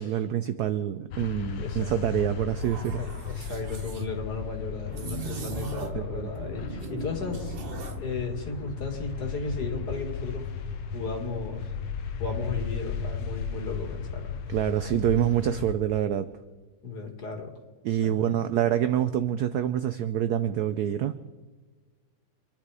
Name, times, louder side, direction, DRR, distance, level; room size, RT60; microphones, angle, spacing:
voice 1, 0.0-3.0 5.9-6.3 14.5-16.3 17.8-21.1, right 10 dB, 80° right, 11 dB, 0.9 m, -26 dB
sound 1, 1.1-15.7, left 6 dB, 75° left, 1.8 m, -35 dB
voice 2, 1.6-1.9 2.9-7.6 8.0-10.5 10.9-11.7 12.2-14.4 16.8-17.5 18.0-18.3, left 3 dB, 50° left, 3 dB, 2.5 m, -35 dB
sound 2, 2.6-4.0 4.9-6.1 6.3-8.1, right 4 dB, 40° right, 0.8 m, -38 dB
26.0 x 10.5 x 4.8 m, 1.4 s
omnidirectional pair, 2.3 m